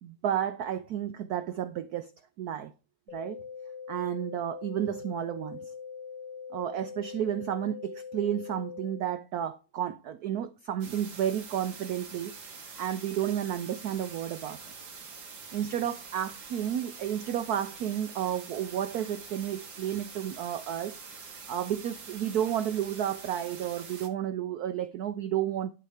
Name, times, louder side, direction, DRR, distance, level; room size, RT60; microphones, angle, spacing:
voice 1, 0.0-2.1 2.4-2.7 3.1-3.4 3.9-5.7 6.5-14.6 15.5-25.7, right 10 dB, 85° right, 0.8 m, -32 dB
sound 1, 3.1-9.1, left 6 dB, 5° left, 1.1 m, -42 dB
sound 2, 10.8-24.1, right 5 dB, 65° right, 2.6 m, -45 dB
11.5 x 4.2 x 4.9 m
omnidirectional pair, 2.3 m